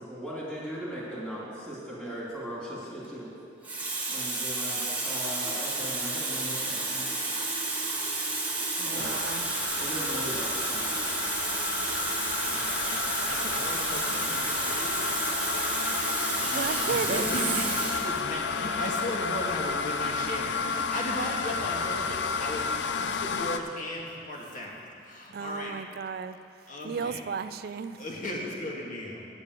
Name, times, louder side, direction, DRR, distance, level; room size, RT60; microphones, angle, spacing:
voice 1, 0.0-3.3 4.1-7.1 8.9-9.2 9.8-10.9, equal, 5° left, -7 dB, 2.9 m, -38 dB
Water tap faucet, 2.8-3.1 3.6-18.1 19.0-19.2, right 2 dB, 10° right, 1.6 m, -31 dB
voice 2, 8.8-9.5 16.3-17.2 25.3-26.4 26.8-28.0, right 5 dB, 60° right, 12 dB, 0.4 m, -34 dB
sound 1, 9.0-23.6, left 5 dB, 75° left, 0.5 m, -32 dB
voice 3, 12.4-15.6 16.1-25.7 26.7-27.2 28.0-29.3, left 1 dB, 50° left, -2 dB, 1.8 m, -36 dB
9.3 x 8.3 x 6.8 m, 2.4 s
head